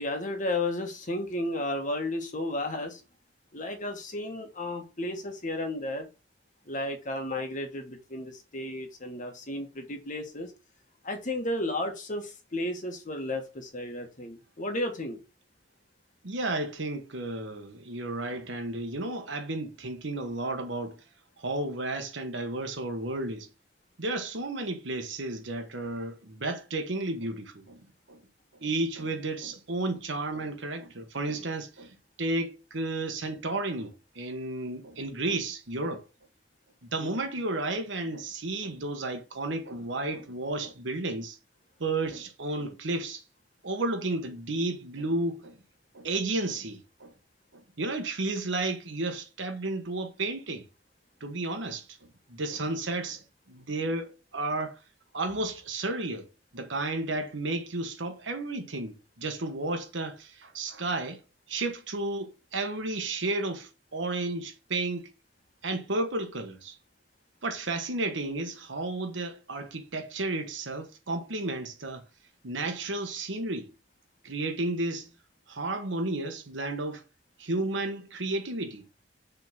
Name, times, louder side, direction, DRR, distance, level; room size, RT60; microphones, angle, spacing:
voice 1, 0.0-3.0 3.5-6.1 6.7-10.5 11.0-15.2 37.0-37.1, left 1 dB, 45° left, 1.4 m, -33 dB
voice 2, 16.2-21.0 21.4-23.5 24.0-28.2 28.6-36.0 36.8-41.4 41.8-43.2 43.6-45.6 45.9-47.1 47.5-50.7 51.2-54.8 55.1-56.3 56.5-61.2 61.5-65.1 65.6-66.8 67.4-72.0 72.4-73.7 74.2-75.1 75.5-77.0 77.4-78.8, right 2 dB, 75° right, 1.3 m, -32 dB
5.6 x 3.6 x 5.8 m
head